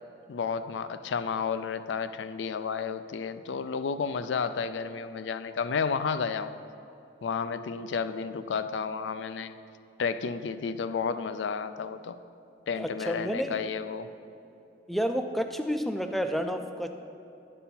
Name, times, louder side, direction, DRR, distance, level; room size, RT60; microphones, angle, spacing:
voice 1, 0.3-6.6 7.2-9.5 10.0-12.2 12.7-14.1, left 5 dB, 85° left, 12 dB, 0.4 m, -32 dB
voice 2, 12.8-13.6 14.9-16.9, equal, ahead, 6 dB, 0.3 m, -30 dB
11.0 x 5.4 x 4.4 m, 2.9 s
head